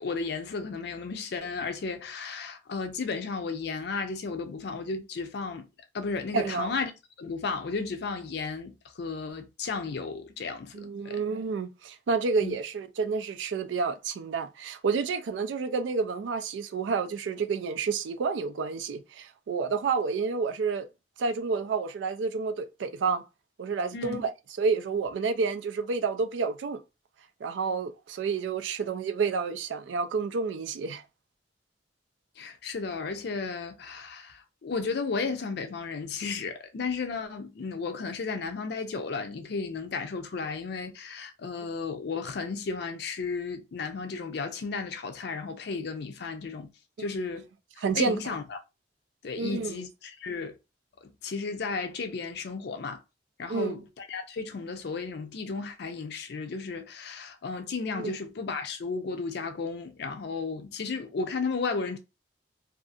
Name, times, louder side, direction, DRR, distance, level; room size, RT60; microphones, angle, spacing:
voice 1, 0.0-5.7 5.9-6.9 7.2-11.2 12.4-12.6 23.9-24.2 32.4-46.7 47.0-47.5 47.8-48.6 49.2-50.6 51.0-53.0 53.4-62.0, left 4 dB, 65° left, 0.5 m, -34 dB
voice 2, 6.3-6.7 10.7-20.9 21.2-23.2 23.6-24.3 24.6-26.8 27.4-31.0 47.0-47.1 47.8-48.2 49.4-49.8 53.5-53.8 58.0-58.1, right 5 dB, 90° right, 0.4 m, -29 dB
2.6 x 2.4 x 2.4 m
head